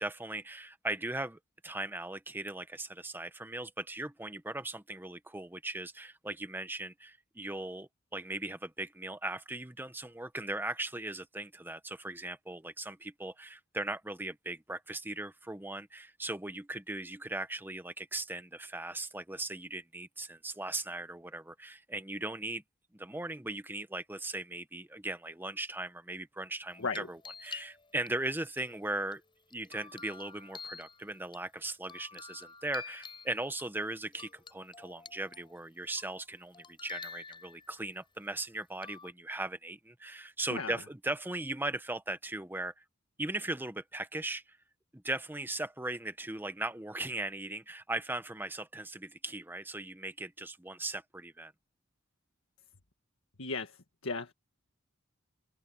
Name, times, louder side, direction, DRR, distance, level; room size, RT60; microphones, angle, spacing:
voice 1, 0.0-22.6 22.9-29.2 29.5-42.8 43.2-44.6 44.9-51.5, right 2 dB, 10° right, 1.0 m, -38 dB
sound 1, 26.7-28.1 28.6-31.4 31.8-33.7 34.1-35.6 36.0-36.3 36.5-37.8 38.8-39.1, left 5 dB, 25° left, 7.1 m, -49 dB
voice 2, 53.4-54.3, left 4 dB, 75° left, 1.7 m, -36 dB
open air
head